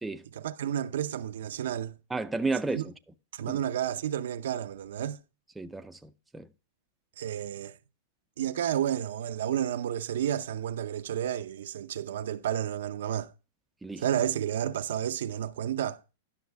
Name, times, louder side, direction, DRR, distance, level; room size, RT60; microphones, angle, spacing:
voice 1, 0.3-2.0 2.7-2.8 3.3-5.2 7.2-7.8 8.4-13.3 14.0-16.0, right 10 dB, 75° right, 0.6 m, -31 dB
voice 2, 2.1-2.9 3.5-3.6 5.6-6.5 13.8-14.0, right 3 dB, 5° right, 0.5 m, -32 dB
11.0 x 6.4 x 3.4 m
hypercardioid pair, 135°, 0 cm